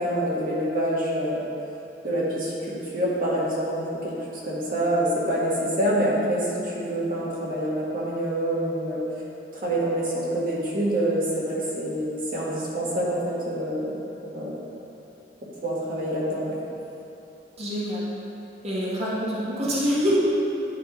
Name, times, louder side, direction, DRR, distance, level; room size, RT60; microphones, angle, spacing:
voice 1, 0.0-1.4 2.0-4.1 4.4-6.5 6.7-9.2 9.5-13.9 14.3-14.6 15.6-16.6, right 1 dB, 55° right, -6 dB, 1.8 m, -26 dB
voice 2, 17.6-18.0 18.6-20.2, equal, 40° right, -7 dB, 1.4 m, -25 dB
10.5 x 3.7 x 5.2 m, 2.9 s
head